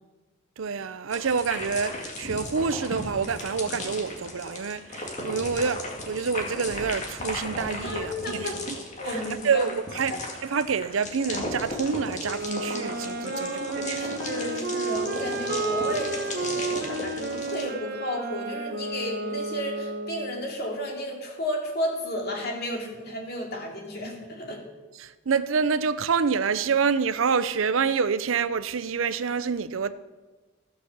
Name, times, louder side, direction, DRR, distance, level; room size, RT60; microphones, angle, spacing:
voice 1, 0.6-8.8 9.1-10.2 10.4-13.5 13.8-14.0 25.0-29.9, right 5 dB, 80° right, 0.6 m, -27 dB
sound 1, 1.1-17.7, left 2 dB, 35° left, 2.2 m, -36 dB
voice 2, 7.8-8.6 9.0-9.7 13.3-24.6, equal, 50° left, 2.7 m, -33 dB
Wind instrument woodwind instrument, 12.2-20.5, right 2 dB, 50° right, 1.0 m, -32 dB
Piano, 15.5-20.0 21.0-21.8, right 2 dB, 20° right, 1.8 m, -47 dB
15.5 x 6.1 x 7.2 m
head